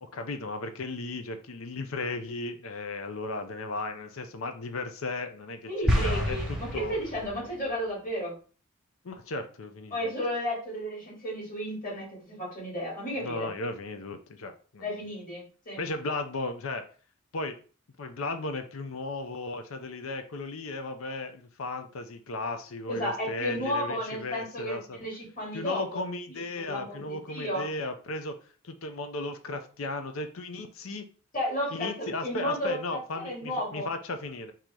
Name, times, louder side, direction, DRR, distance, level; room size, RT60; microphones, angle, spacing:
voice 1, 0.0-7.0 9.0-10.1 13.2-15.1 15.8-16.9 17.3-17.6 18.0-25.0 25.5-28.4 28.6-31.0 31.7-34.5, left 2 dB, 85° left, 8 dB, 0.6 m, -35 dB
voice 2, 5.7-8.3 9.9-13.5 14.8-15.8 22.9-26.0 26.3-27.6 31.3-33.9, equal, 40° left, -3 dB, 2.2 m, -33 dB
sound 1, 5.9-7.5, equal, ahead, 0.8 m, -28 dB
3.8 x 2.8 x 4.6 m, 0.38 s
head